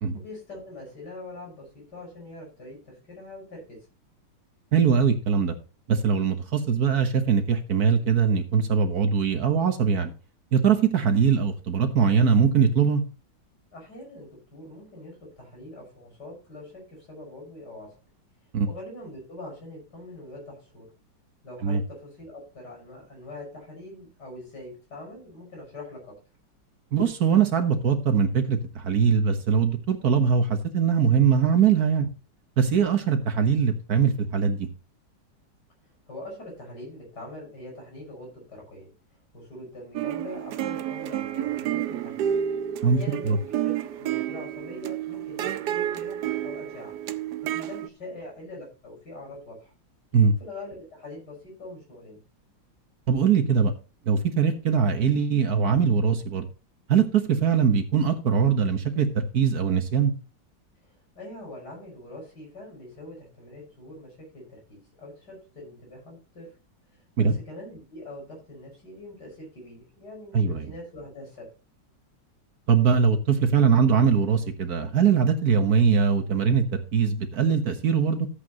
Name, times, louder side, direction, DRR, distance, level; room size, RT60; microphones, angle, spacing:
voice 1, 0.1-3.8 13.7-17.9 18.6-20.9 21.4-26.1 33.0-33.1 36.1-38.9 39.3-42.3 42.8-46.9 47.5-49.7 50.4-52.2 60.8-64.4 64.7-66.5 67.2-71.5, left 2 dB, 60° left, -1 dB, 6.4 m, -43 dB
voice 2, 4.7-5.6 5.9-10.1 10.5-13.0 18.5-18.7 21.6-21.8 26.9-32.1 32.6-34.7 42.8-43.0 43.3-43.4 50.1-50.3 53.1-53.7 54.1-56.5 56.9-60.1 67.2-67.3 70.3-70.7 72.7-78.3, right 6 dB, 55° right, 6 dB, 1.7 m, -22 dB
sound 1, 39.9-47.9, right 10 dB, 70° right, 1.1 m, -30 dB
13.5 x 8.3 x 3.0 m, 0.32 s
omnidirectional pair, 2.0 m